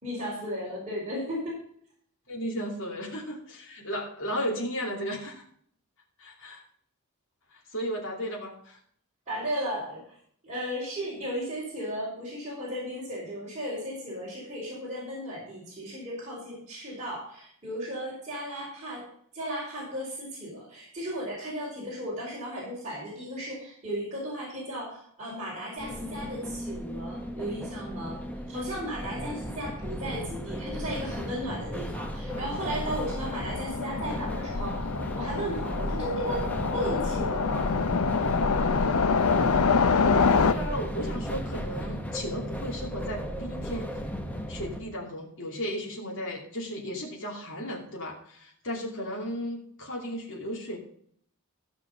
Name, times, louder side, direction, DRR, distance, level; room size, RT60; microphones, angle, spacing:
voice 1, 0.0-1.6 9.3-10.1 10.4-19.0 19.3-28.2 28.5-37.7, equal, 35° right, -7 dB, 4.7 m, -35 dB
voice 2, 2.3-5.4 6.2-6.6 7.5-8.8 40.4-43.9 44.5-50.8, equal, 60° left, -2 dB, 2.8 m, -35 dB
sound 1, 25.8-44.8, equal, 5° left, 0.9 m, -35 dB
Train, 32.3-40.5, left 5 dB, 85° left, 0.7 m, -26 dB
14.5 x 6.0 x 5.4 m, 0.62 s
head